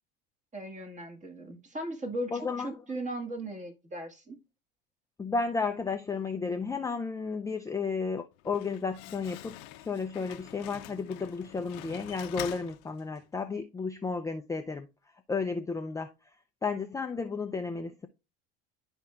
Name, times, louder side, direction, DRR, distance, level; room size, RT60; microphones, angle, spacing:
voice 1, 0.5-4.4, right 1 dB, 25° right, 1.8 m, -38 dB
voice 2, 2.3-2.8 5.2-14.9 15.3-16.1 16.6-18.1, left 4 dB, 10° left, 0.5 m, -33 dB
Slam, 8.3-13.4, left 15 dB, 70° left, 0.7 m, -45 dB
12.0 x 4.4 x 2.4 m
supercardioid pair, 100°, 30 cm